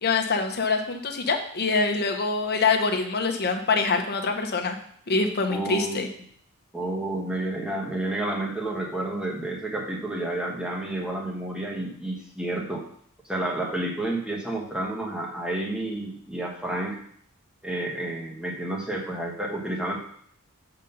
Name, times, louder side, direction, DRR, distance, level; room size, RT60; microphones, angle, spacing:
voice 1, 0.0-4.8 5.1-6.1, left 4 dB, 45° left, 4 dB, 0.9 m, -25 dB
voice 2, 5.5-6.0 6.7-12.9 13.2-17.0 17.6-20.0, right 1 dB, 5° right, -2 dB, 1.3 m, -30 dB
7.3 x 3.9 x 5.4 m, 0.63 s
head